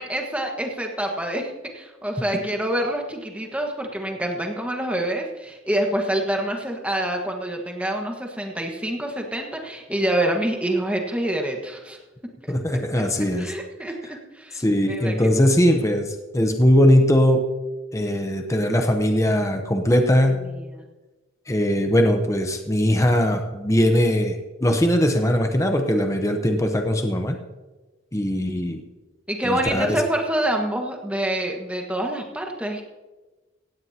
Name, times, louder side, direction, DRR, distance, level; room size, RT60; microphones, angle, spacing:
voice 1, 0.0-12.3 12.9-15.6 20.3-20.9 29.3-32.8, right 1 dB, 5° right, 1 dB, 1.6 m, -27 dB
voice 2, 12.5-13.5 14.6-17.5 17.9-20.4 21.5-27.4 28.1-28.8 29.4-30.0, equal, 15° left, 5 dB, 0.9 m, -20 dB
17.0 x 16.0 x 2.9 m, 1.2 s
head